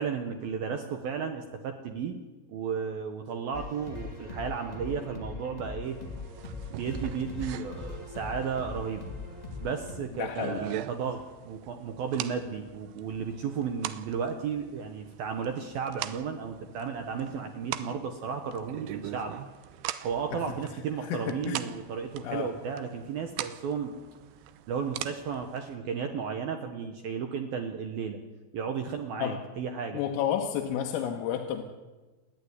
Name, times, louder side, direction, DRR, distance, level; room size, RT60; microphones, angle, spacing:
voice 1, 0.0-2.2 2.5-6.0 6.7-9.0 9.6-19.3 20.0-23.9 24.7-28.2 28.5-30.0, right 6 dB, 70° right, 5 dB, 2.3 m, -34 dB
sound 1, 3.5-10.0, left 4 dB, 30° left, 0.7 m, -41 dB
sound 2, 5.8-25.8, right 12 dB, 85° right, 2.3 m, -42 dB
voice 2, 10.2-10.6 20.3-20.5 21.0-21.6 22.2-22.5 29.2-29.4 29.9-31.6, left 9 dB, 80° left, 2 dB, 4.0 m, -31 dB
30.0 x 10.5 x 9.8 m, 1.2 s
omnidirectional pair, 5.9 m